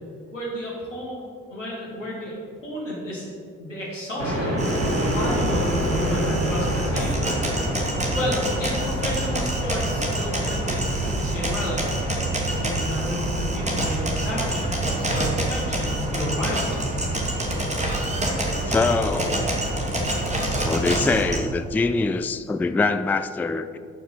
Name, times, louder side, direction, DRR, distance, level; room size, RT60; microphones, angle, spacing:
voice 1, 0.3-1.2 1.5-2.3 2.6-3.3 3.6-4.6 5.1-7.3 8.1-11.9 12.5-16.7, equal, 85° left, -5 dB, 1.7 m, -31 dB
sound 1, 4.2-20.9, equal, 90° right, 1.8 m, -32 dB
sound 2, 4.6-21.4, right 1 dB, 20° right, 2.0 m, -26 dB
voice 2, 18.6-19.5 20.6-23.8, left 3 dB, 5° left, 11 dB, 0.3 m, -24 dB
12.0 x 5.9 x 4.2 m, 2.3 s
figure-of-eight pair, 40°, 37 cm